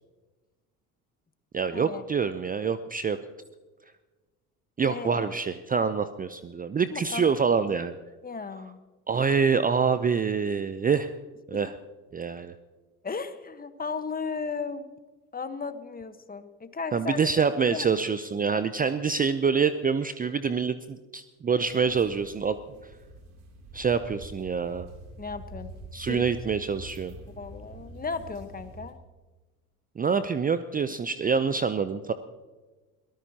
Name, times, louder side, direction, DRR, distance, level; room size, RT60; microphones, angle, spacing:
voice 1, 1.5-3.2 4.8-8.0 9.1-11.1 11.5-11.7 12.1-12.5 16.9-22.6 23.7-24.9 25.9-27.1 30.0-32.1, right 6 dB, 20° right, 12 dB, 0.6 m, -26 dB
voice 2, 4.9-5.3 6.9-7.3 8.2-8.8 13.0-14.9 15.3-17.9 25.2-25.7 26.1-26.2 27.3-29.0, left 5 dB, 20° left, 10 dB, 1.3 m, -35 dB
sound 1, 21.6-28.9, right 2 dB, 70° right, 3.3 m, -45 dB
22.5 x 18.5 x 2.9 m, 1.2 s
hypercardioid pair, 65°, 43 cm